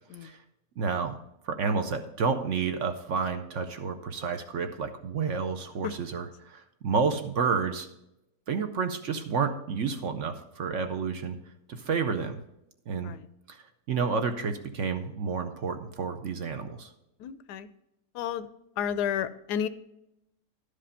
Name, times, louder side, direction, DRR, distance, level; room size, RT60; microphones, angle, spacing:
voice 1, 0.8-1.2 1.4-7.9 8.5-11.4 11.7-12.4 12.9-13.1 13.5-16.9, right 5 dB, 60° right, 7 dB, 0.9 m, -30 dB
voice 2, 17.2-17.7 18.1-18.5 18.8-19.7, left 9 dB, 90° left, 14 dB, 1.2 m, -31 dB
11.5 x 5.1 x 5.5 m, 0.86 s
omnidirectional pair, 1.7 m